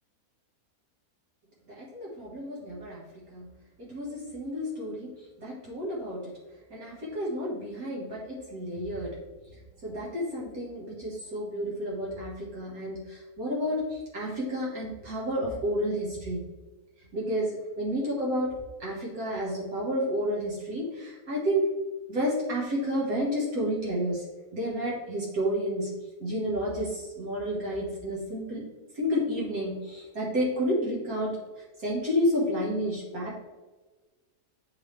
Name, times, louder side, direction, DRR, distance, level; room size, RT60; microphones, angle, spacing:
voice 1, 1.7-3.0 3.3-3.5 3.8-5.1 5.4-6.3 6.7-9.2 9.8-16.4 17.1-21.7 22.1-24.2 24.5-28.7 28.9-31.4 31.8-33.4, equal, 65° right, -5 dB, 1.9 m, -30 dB
9.3 x 3.5 x 3.3 m, 1.2 s
omnidirectional pair, 1.7 m